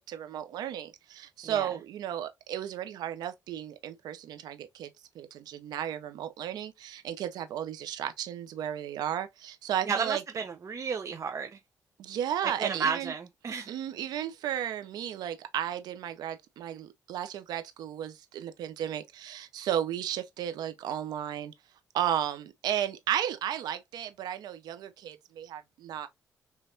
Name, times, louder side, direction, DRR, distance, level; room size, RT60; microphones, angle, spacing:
voice 1, 0.0-4.9 5.1-10.2 12.0-13.1 13.7-21.5 21.9-26.1, right 10 dB, 85° right, 0.9 m, -34 dB
voice 2, 9.9-11.6 12.4-13.7, right 5 dB, 45° right, 0.8 m, -32 dB
5.8 x 3.3 x 2.7 m
cardioid pair, 70°, 7 cm